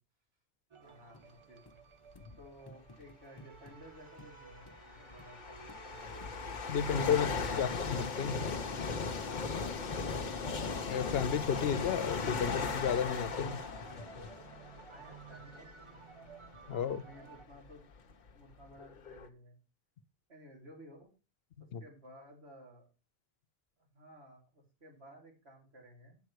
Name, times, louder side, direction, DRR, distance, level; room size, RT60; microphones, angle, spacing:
sound 1, 0.7-17.5, right 6 dB, 40° right, 0.5 m, -54 dB
voice 1, 0.8-1.8 2.4-6.3 7.1-7.7 9.9-10.3 14.9-16.3 16.8-19.6 20.3-21.1 21.6-22.9 23.8-26.2, equal, 90° right, 0 dB, 3.2 m, -55 dB
sound 2, 1.1-1.3 1.7-1.8 2.2-2.3 2.7-3.8 4.2-4.4 4.7-4.8 5.2-5.3 5.7-5.8 6.2-6.4 6.7-6.8 7.2-7.3 7.7-7.9 8.2-8.4 8.7-10.3 10.6-10.8 11.3-11.7 12.0-12.5 13.0-13.1, left 1 dB, 30° left, 0.6 m, -55 dB
sound 3, 2.2-2.4 3.5-3.6 4.4-15.8 16.4-16.6 17.4-17.5 17.7-19.3, left 5 dB, 50° left, 0.9 m, -38 dB
voice 2, 6.7-8.5 10.9-13.6 16.7-17.0 21.7-21.8, left 7 dB, 75° left, 15 dB, 0.9 m, -33 dB
7.8 x 7.3 x 4.7 m, 0.32 s
omnidirectional pair, 1.1 m